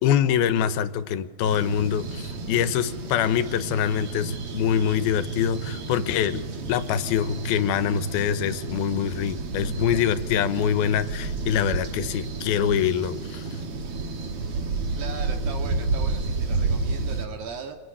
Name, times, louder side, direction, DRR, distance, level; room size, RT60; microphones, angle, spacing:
voice 1, 0.0-13.5, left 9 dB, 85° left, 13 dB, 2.9 m, -24 dB
sound 1, 1.4-17.3, right 3 dB, 45° right, 2.4 m, -31 dB
voice 2, 14.9-17.8, right 5 dB, 75° right, 5 dB, 3.7 m, -38 dB
27.0 x 22.0 x 10.0 m, 1.5 s
omnidirectional pair, 4.3 m